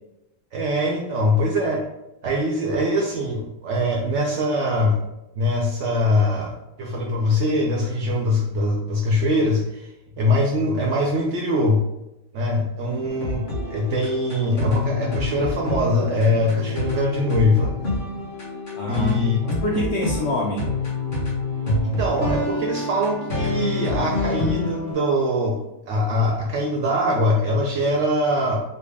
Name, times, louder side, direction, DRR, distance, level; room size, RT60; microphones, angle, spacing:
voice 1, 0.5-1.8 2.2-5.0 5.4-9.9 10.2-11.8 12.3-17.7 18.9-19.4 21.8-25.6 25.9-28.6, left 1 dB, 65° right, -1 dB, 0.7 m, -22 dB
sound 1, 13.1-24.9, left 2 dB, 35° left, 1.2 m, -27 dB
voice 2, 18.8-20.8, left 1 dB, 70° left, -3 dB, 0.6 m, -26 dB
3.5 x 2.2 x 3.4 m, 0.90 s
omnidirectional pair, 1.7 m